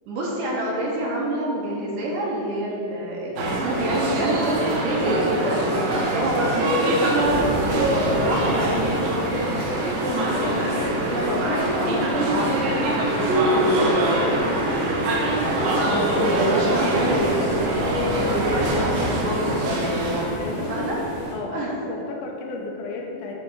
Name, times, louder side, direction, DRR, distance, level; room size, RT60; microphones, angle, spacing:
voice 1, 0.1-7.3 7.8-9.6 10.4-12.6 14.9-15.1 16.2-17.4 18.1-19.1 19.3-20.0 20.7-21.0 21.5-21.7, right 1 dB, 75° right, -3 dB, 2.3 m, -27 dB
sound 1, 3.4-20.3, right 1 dB, 90° right, 2.7 m, -23 dB
sound 2, 7.2-21.3, equal, 40° left, 1.1 m, -32 dB
voice 2, 10.2-12.7 13.1-15.3 15.7-17.0 18.3-18.9 20.3-21.0 21.3-23.3, left 3 dB, 85° left, 0 dB, 2.5 m, -33 dB
9.2 x 3.2 x 4.5 m, 2.6 s
omnidirectional pair, 4.2 m